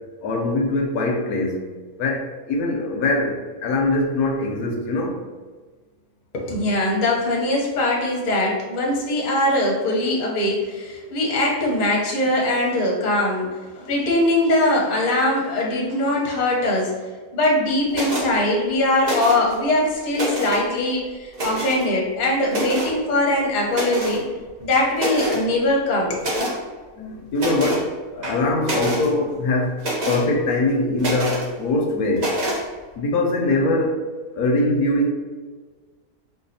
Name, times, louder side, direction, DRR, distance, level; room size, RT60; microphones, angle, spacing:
voice 1, 0.2-1.7 2.0-5.2 27.0-29.8 30.1-32.4 33.0-34.1 34.3-35.1, left 2 dB, 80° left, 1 dB, 1.1 m, -22 dB
voice 2, 6.3-17.1 17.3-24.3 24.6-26.3, left 1 dB, 40° left, -3 dB, 0.7 m, -21 dB
sound 1, 17.9-18.3 19.0-19.5 20.0-20.6 21.3-21.8 22.5-22.9 23.7-24.2 24.6-24.7 25.0-25.4 26.2-26.6 27.4-27.8 28.2-29.1 29.8-30.2 31.0-31.5 32.2-32.6, right 1 dB, 45° right, 0.5 m, -26 dB
4.6 x 2.3 x 2.7 m, 1.4 s
omnidirectional pair, 1.6 m